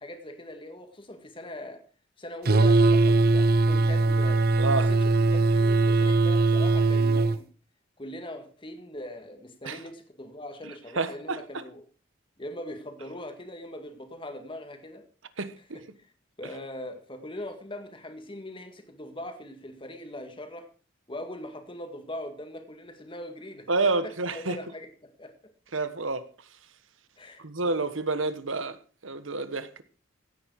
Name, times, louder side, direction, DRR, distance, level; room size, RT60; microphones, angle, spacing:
voice 1, 0.0-1.8 2.2-4.5 4.9-7.5 8.0-11.8 12.4-15.1 15.7-15.8 16.4-20.7 21.1-25.5 27.2-27.4, left 1 dB, 25° left, 2.0 m, -41 dB
sound 1, 2.5-7.4, right 3 dB, 50° right, 0.6 m, -21 dB
voice 2, 4.6-4.9 9.6-9.8 11.0-11.4 15.4-15.8 23.7-24.6 25.7-26.3 27.4-28.8 29.0-29.8, right 3 dB, 85° right, 1.4 m, -29 dB
16.0 x 9.3 x 4.7 m
head